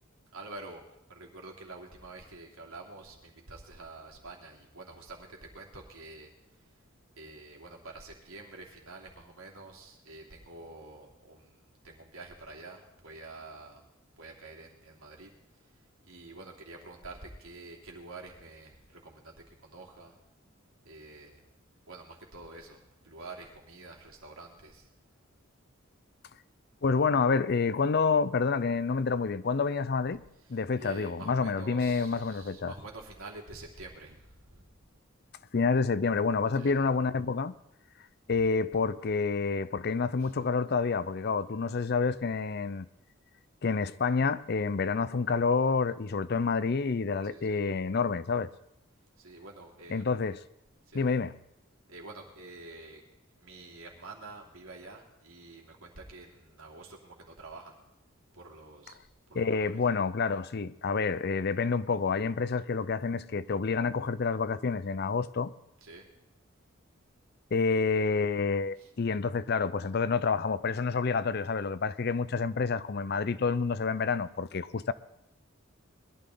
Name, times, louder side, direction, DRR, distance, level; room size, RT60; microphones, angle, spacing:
voice 1, 0.3-0.8 1.1-6.3 7.2-13.8 14.2-15.3 16.0-20.1 20.8-21.4 21.9-22.8 23.0-24.9 30.5-34.6 36.5-36.7 40.2-40.3 47.2-47.6 49.2-50.0 50.9-51.0 51.9-53.0 53.4-57.7 58.3-59.0 59.3-59.8 65.8-66.1 68.8-68.9, right 2 dB, 90° right, 3.0 m, -48 dB
voice 2, 26.8-30.2 30.5-32.7 35.5-37.5 38.3-42.9 43.6-48.5 49.9-50.4 50.9-51.3 59.3-65.5 67.5-74.9, left 4 dB, 50° left, 0.5 m, -28 dB
20.5 x 12.5 x 3.9 m
head